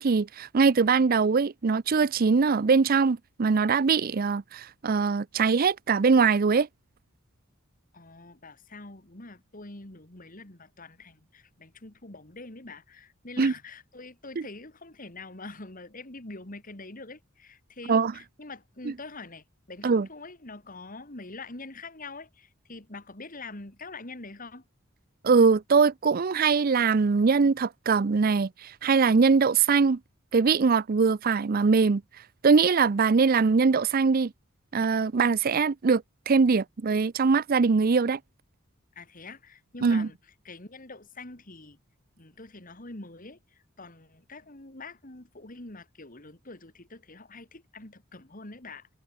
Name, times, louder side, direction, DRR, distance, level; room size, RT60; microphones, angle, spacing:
voice 1, 0.0-6.7 13.4-13.5 17.9-18.1 19.8-20.1 25.2-30.0 30.3-32.0 32.4-34.3 34.7-38.2 39.8-40.1, right 5 dB, 45° right, 0.5 m, -22 dB
voice 2, 7.9-24.7 38.9-40.2 40.4-41.8 42.2-48.9, left 3 dB, 40° left, 2.7 m, -44 dB
head